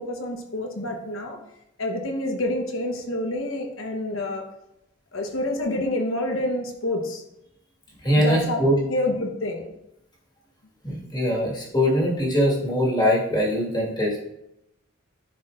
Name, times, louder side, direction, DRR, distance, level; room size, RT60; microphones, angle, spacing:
voice 1, 0.0-1.4 1.8-4.5 5.1-7.2 8.2-8.6 8.9-9.7, left 1 dB, 75° left, 3 dB, 1.0 m, -28 dB
voice 2, 8.0-8.8 10.8-14.2, equal, 20° left, -4 dB, 1.7 m, -22 dB
10.5 x 4.3 x 2.5 m, 0.84 s
head